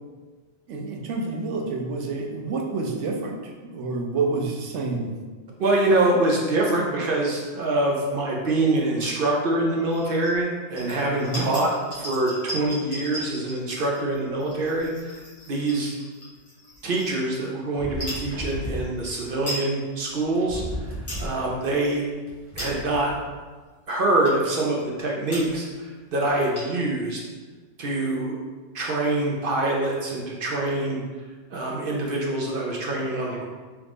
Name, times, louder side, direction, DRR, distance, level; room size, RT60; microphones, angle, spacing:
voice 1, 0.7-5.2 11.2-11.5, right 3 dB, 85° right, 1 dB, 1.0 m, -28 dB
voice 2, 5.6-11.7 12.0-15.1 15.5-16.0 16.8-20.6 21.2-22.0 22.6-23.1 23.9-27.2 27.8-28.4 28.7-31.0 31.5-33.5, right 2 dB, 55° right, -2 dB, 0.8 m, -25 dB
sound 1, 9.9-10.4 10.7-17.4 17.9-18.3 18.9-19.0 19.2-19.7 20.1-20.2 20.7-21.3 21.7-21.9 22.4-23.0 23.6-23.7 24.2-24.6 25.0-25.1 25.3-25.7 26.0-26.1 26.3-26.9, equal, 20° left, 1.3 m, -38 dB
sound 2, 17.8-18.9 19.9-20.0 20.2-21.4 22.3-23.1, equal, 15° right, 0.8 m, -34 dB
3.7 x 3.1 x 3.4 m, 1.4 s
omnidirectional pair, 1.2 m